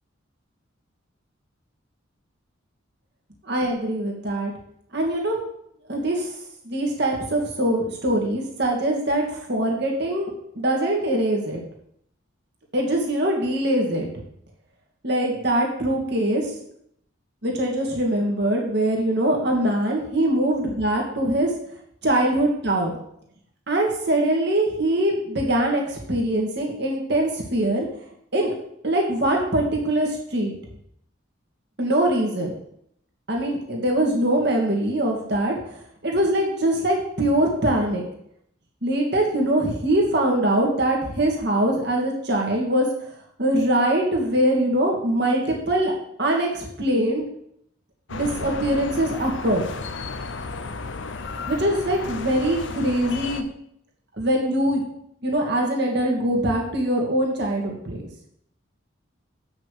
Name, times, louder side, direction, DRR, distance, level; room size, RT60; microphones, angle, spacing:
voice 1, 3.5-4.5 4.9-5.4 5.9-6.3 6.6-11.6 12.7-14.1 15.0-16.5 17.4-21.5 22.0-22.9 23.7-27.9 28.3-28.5 28.8-30.5 31.8-32.5 33.3-35.6 36.0-38.0 38.8-42.9 43.4-45.9 46.2-47.2 48.1-49.6 51.5-53.4 54.2-54.8 55.2-58.0, right 1 dB, 55° right, 0 dB, 2.5 m, -22 dB
sound 1, 48.1-53.4, left 4 dB, 65° left, 0.7 m, -33 dB
8.4 x 6.2 x 6.9 m, 0.72 s
head